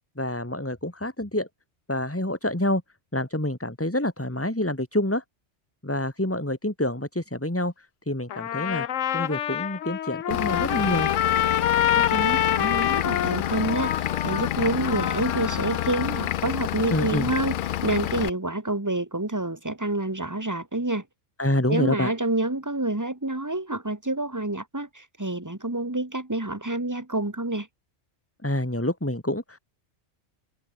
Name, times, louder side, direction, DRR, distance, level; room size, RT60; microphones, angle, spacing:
voice 1, 0.2-1.5 1.9-2.8 3.1-5.2 5.8-11.1 16.9-17.3 21.4-22.1 28.4-29.6, left 1 dB, 10° left, 2.4 m, -27 dB
Trumpet, 8.3-16.3, left 10 dB, 90° left, 1.2 m, -27 dB
Vehicle / Engine, 10.3-18.3, left 11 dB, 60° left, 0.5 m, -29 dB
voice 2, 12.0-13.9 14.2-21.1 21.7-27.7, right 2 dB, 15° right, 2.1 m, -28 dB
omnidirectional pair, 1.3 m